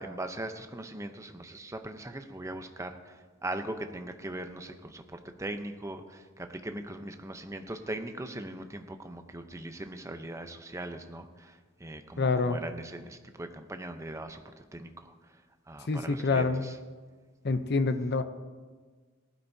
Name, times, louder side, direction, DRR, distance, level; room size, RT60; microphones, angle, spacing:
voice 1, 0.0-15.1 15.7-16.8, right 1 dB, 15° right, 7 dB, 0.7 m, -40 dB
voice 2, 12.2-12.6 15.9-16.7 17.4-18.2, left 3 dB, 55° left, 10 dB, 0.7 m, -27 dB
18.5 x 12.0 x 2.7 m, 1.4 s
head